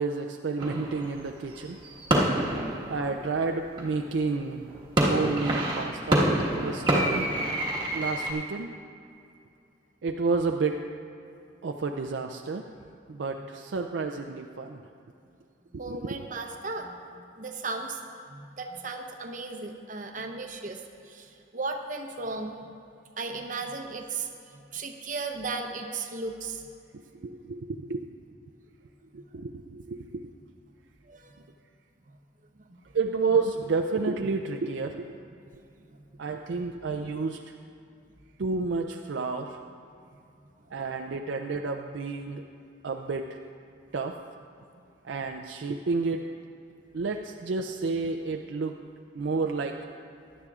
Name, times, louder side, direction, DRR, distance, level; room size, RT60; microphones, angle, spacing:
voice 1, 0.0-1.8 2.9-4.8 5.1-7.3 7.9-8.7 10.0-10.8 11.6-12.7 13.1-14.8 15.7-16.3 26.9-28.1 29.1-30.3 32.9-35.1 36.2-37.5 38.4-39.6 40.7-42.4 42.8-43.4 43.9-44.2 45.0-46.3 46.9-48.8 49.1-49.8, right 4 dB, 65° right, 4 dB, 0.4 m, -30 dB
sound 1, 0.6-4.2 4.7-8.3, right 1 dB, 25° right, 1.5 m, -27 dB
voice 2, 15.7-18.0 18.3-22.6 23.2-26.6 31.1-31.3, right 3 dB, 40° right, 3 dB, 0.8 m, -36 dB
17.0 x 11.0 x 2.4 m, 2.5 s
head